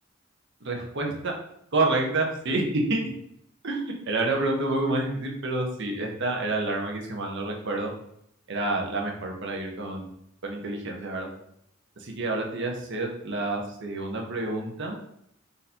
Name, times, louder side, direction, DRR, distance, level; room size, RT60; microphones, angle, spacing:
voice 1, 0.6-1.3 1.7-3.0 3.6-3.8 4.1-7.9 8.5-10.1 10.4-11.3 12.0-15.0, right 2 dB, 55° right, 1 dB, 0.9 m, -28 dB
4.0 x 2.7 x 4.2 m, 0.72 s
head